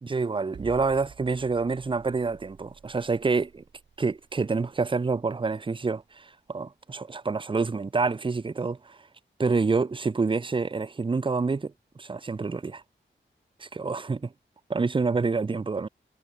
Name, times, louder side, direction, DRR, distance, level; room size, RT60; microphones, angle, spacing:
voice 1, 0.0-3.6 4.0-9.1 9.4-12.8 13.6-14.3 14.7-15.9, right 4 dB, 25° right, 0.5 m, -27 dB
sound 1, 0.5-6.7, right 6 dB, 70° right, 1.1 m, -50 dB
cardioid pair, 45°, 20 cm